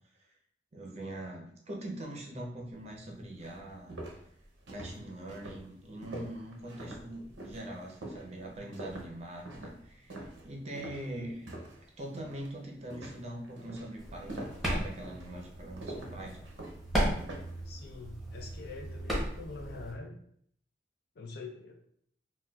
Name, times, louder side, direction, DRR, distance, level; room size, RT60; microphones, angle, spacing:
voice 1, 0.7-3.9 4.7-11.5 12.0-16.4, right 1 dB, 35° right, 0 dB, 0.6 m, -42 dB
sound 1, 2.9-3.0 3.4-11.8 12.1-12.5 12.9-17.6, right 1 dB, 85° right, 0.7 m, -45 dB
voice 2, 11.0-11.4 17.7-20.2 21.2-21.7, left 3 dB, 60° left, 3 dB, 0.5 m, -45 dB
sound 2, 14.0-19.9, equal, ahead, 0.8 m, -36 dB
4.0 x 2.3 x 2.3 m, 0.66 s
head